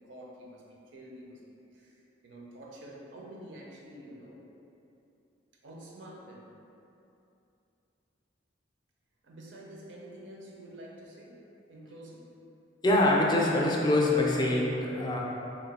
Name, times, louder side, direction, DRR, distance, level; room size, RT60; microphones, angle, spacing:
voice 1, 0.0-4.4 5.6-6.5 9.2-11.4 11.7-12.3, right 1 dB, 80° right, -2 dB, 0.6 m, -48 dB
voice 2, 12.8-15.2, left 1 dB, 25° left, -3 dB, 0.3 m, -24 dB
3.0 x 2.4 x 4.1 m, 2.7 s
head